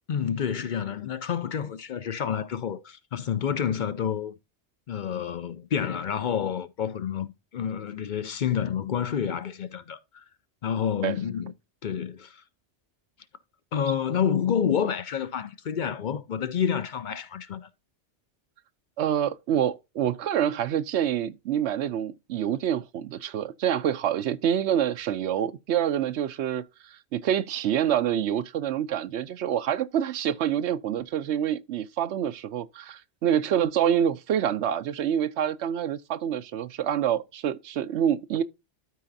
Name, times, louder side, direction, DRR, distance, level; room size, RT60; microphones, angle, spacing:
voice 1, 0.1-4.3 4.9-10.2 10.6-11.5 11.8-12.4 13.7-17.7, left 8 dB, 55° left, 0.6 m, -29 dB
voice 2, 19.0-38.4, right 9 dB, 75° right, 0.9 m, -27 dB
12.5 x 4.9 x 2.6 m
omnidirectional pair, 1.2 m